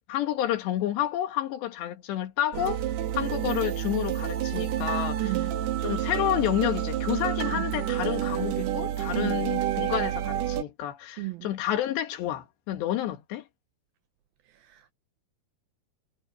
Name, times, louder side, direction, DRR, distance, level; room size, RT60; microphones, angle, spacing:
voice 1, 0.1-2.8 3.2-5.3 5.8-13.4, left 12 dB, 80° left, 3.8 m, -30 dB
sound 1, 2.5-10.6, right 11 dB, 70° right, 3.5 m, -29 dB
voice 2, 5.2-5.5 7.5-7.7 9.1-9.4 11.2-11.5 14.5-14.9, right 20 dB, 90° right, 2.1 m, -35 dB
omnidirectional pair, 5.0 m